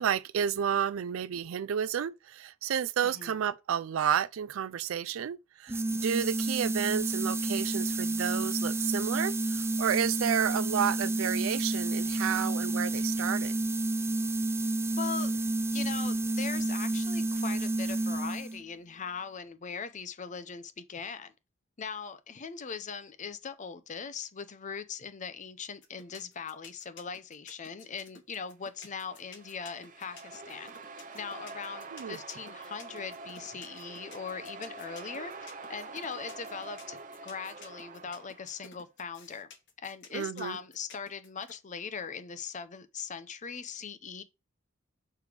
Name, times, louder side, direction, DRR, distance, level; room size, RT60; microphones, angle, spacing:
voice 1, 0.0-13.5 31.9-32.2 40.1-40.6, right 8 dB, 75° right, 0.4 m, -31 dB
voice 2, 3.0-3.3 15.0-15.4 15.7-21.3 21.8-30.8 31.1-37.0 37.2-39.5 39.8-44.2, left 6 dB, 35° left, 0.6 m, -40 dB
sound 1, 5.7-18.6, right 2 dB, 10° right, 0.4 m, -30 dB
sound 2, 25.8-41.5, left 5 dB, 60° left, 1.2 m, -52 dB
sound 3, 28.8-38.7, right 3 dB, 40° right, 0.9 m, -46 dB
6.8 x 3.3 x 4.8 m
head